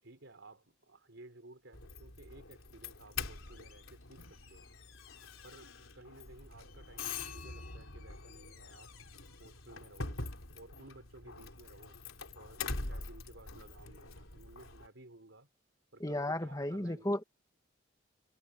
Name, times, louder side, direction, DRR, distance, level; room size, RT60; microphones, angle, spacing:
voice 1, 0.0-4.7 5.4-9.0 9.4-10.2 10.5-12.0 12.3-15.5 15.9-17.1, right 2 dB, 70° right, 3.6 m, -56 dB
Doorbell, 1.7-14.9, left 4 dB, 90° left, 3.9 m, -44 dB
voice 2, 16.0-17.2, left 1 dB, 15° left, 1.4 m, -34 dB
head